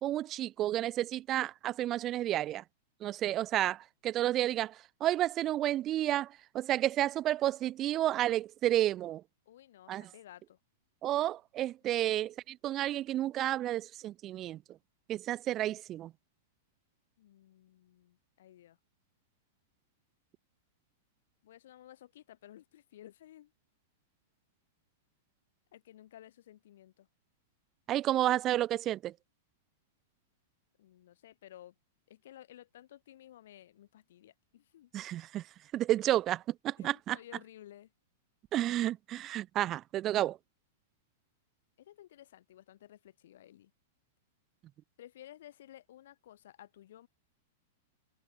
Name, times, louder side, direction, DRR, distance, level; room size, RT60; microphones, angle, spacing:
voice 1, 0.0-2.6 3.0-9.2 9.9-10.1 11.0-14.6 15.1-16.1 27.9-29.1 34.9-35.4 35.7-37.2 38.5-40.4, right 13 dB, 35° right, 0.8 m, -31 dB
voice 2, 9.5-10.6 17.2-18.8 21.4-23.5 25.7-27.1 30.8-31.7 32.1-34.9 36.8-37.9 41.8-43.7 45.0-47.1, left 12 dB, 70° left, 4.4 m, -55 dB
hypercardioid pair, 120°, 0 cm